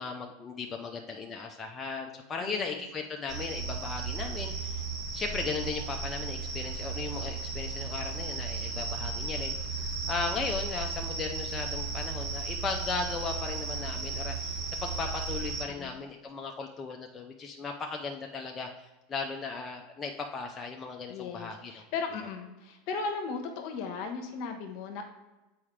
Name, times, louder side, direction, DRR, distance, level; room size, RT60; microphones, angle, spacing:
voice 1, 0.0-4.8 5.1-9.5 9.8-14.5 14.8-21.8, left 4 dB, 25° left, 2 dB, 0.6 m, -37 dB
voice 2, 2.4-2.8 15.7-16.0 21.1-25.0, left 5 dB, 60° left, 5 dB, 1.1 m, -36 dB
sound 1, 3.3-15.6, right 4 dB, 40° right, 1.9 m, -35 dB
7.1 x 4.7 x 3.3 m, 1.1 s
hypercardioid pair, 90°, 0 cm